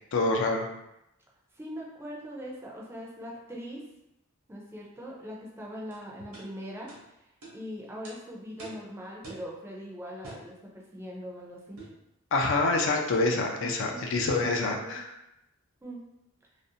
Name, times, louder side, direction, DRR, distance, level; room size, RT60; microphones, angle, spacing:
voice 1, 0.1-0.6 12.3-15.0, left 3 dB, 60° left, 2 dB, 0.4 m, -26 dB
voice 2, 1.6-3.8 4.5-6.9 7.2-7.3 7.5-11.8 13.6-14.0 14.4-15.0 15.8-16.0, equal, 10° right, -3 dB, 0.4 m, -41 dB
sound 1, 5.9-6.0 6.3-6.5 6.9-7.0 7.4-7.6 8.0-8.2 8.6-8.8 9.2-9.5 10.2-10.5 11.8-12.0 13.1-13.4 14.2-14.4, right 2 dB, 80° right, 0.8 m, -45 dB
2.5 x 2.0 x 2.7 m, 0.86 s
head